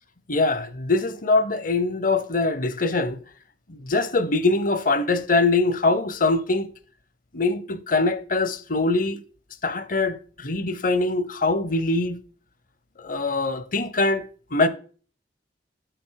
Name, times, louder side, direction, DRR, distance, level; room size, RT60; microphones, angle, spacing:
voice 1, 0.3-3.2 3.7-6.7 7.3-9.2 9.6-12.2 13.0-14.7, left 3 dB, 50° left, 0.7 m, -23 dB
8.5 x 6.7 x 3.9 m
head